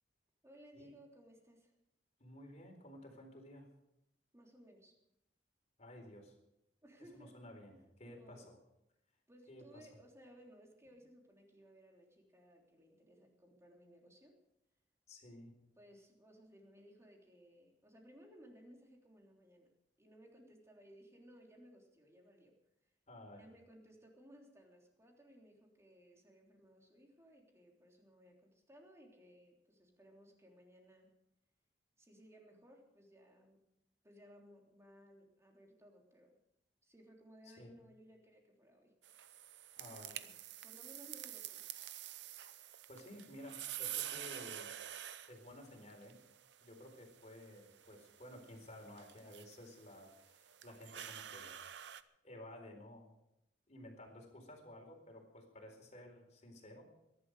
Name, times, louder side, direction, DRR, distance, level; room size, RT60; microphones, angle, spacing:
voice 1, 0.4-1.7 4.3-4.9 6.8-7.4 8.0-8.6 9.3-14.3 15.8-19.7 20.0-22.5 23.2-31.1 32.0-33.6 34.0-36.4 36.8-38.9 39.2-39.5 39.8-41.6, equal, 15° right, 0 dB, 3.4 m, -61 dB
voice 2, 2.2-3.7 5.8-6.3 7.1-8.4 9.5-9.9 15.1-15.5 23.1-23.4 37.5-37.8 39.8-40.1 42.9-44.7 45.3-46.2 46.6-51.5 52.2-53.1 53.7-56.8, left 1 dB, 40° left, 3 dB, 4.2 m, -54 dB
sound 1, 39.0-52.0, right 12 dB, 75° right, 0.7 m, -49 dB
22.0 x 11.5 x 5.0 m, 0.83 s
head